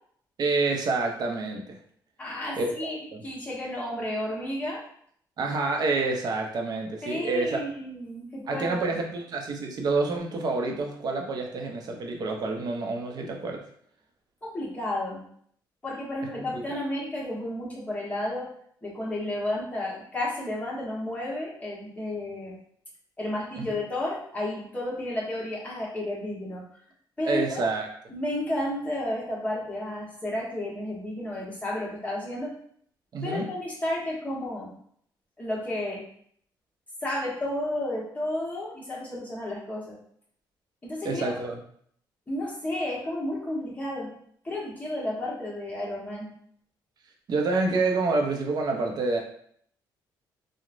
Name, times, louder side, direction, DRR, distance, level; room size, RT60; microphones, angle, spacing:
voice 1, 0.4-1.7 2.6-3.2 5.4-7.6 8.5-13.6 16.4-16.8 23.6-23.7 27.2-27.9 33.1-33.5 41.0-41.6 47.3-49.2, right 3 dB, 55° right, 2 dB, 0.6 m, -28 dB
voice 2, 2.2-3.0 3.2-4.8 7.0-9.0 14.4-15.2 15.8-18.5 18.8-22.5 23.2-26.6 27.2-27.7 28.1-32.5 33.2-34.7 35.4-36.0 37.0-39.9 40.8-41.3 42.3-44.1 44.4-46.3, left 1 dB, 20° left, -5 dB, 1.0 m, -32 dB
3.0 x 2.1 x 2.5 m, 0.64 s
cardioid pair, 100°, 8 cm